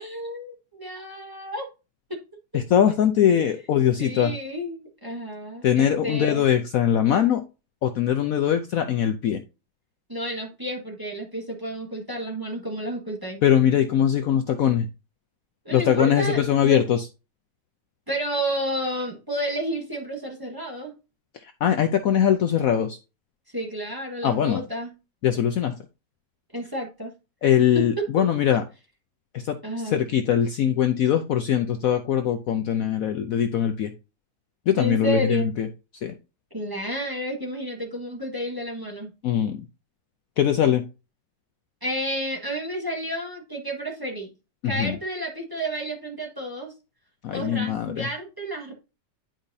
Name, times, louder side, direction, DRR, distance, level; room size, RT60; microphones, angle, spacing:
voice 1, 0.0-1.7 2.1-2.2 3.3-3.6 4.0-6.4 10.1-13.4 15.6-16.8 18.1-20.9 23.5-24.9 26.5-27.1 27.7-28.1 29.6-30.0 34.8-35.5 36.5-39.1 41.8-44.3 44.6-46.7 47.3-48.7, right 1 dB, 15° right, 0 dB, 1.4 m, -31 dB
voice 2, 2.5-4.3 5.6-7.4 7.8-9.4 13.4-14.9 15.7-17.1 21.4-23.0 24.2-24.6 25.2-25.7 27.4-28.6 29.3-29.6 29.8-33.9 34.7-35.7 36.0-36.2 39.2-39.7 40.4-40.8 44.6-45.0 47.2-48.1, left 9 dB, 65° left, 7 dB, 0.9 m, -21 dB
10.5 x 5.0 x 2.7 m, 0.29 s
omnidirectional pair, 1.9 m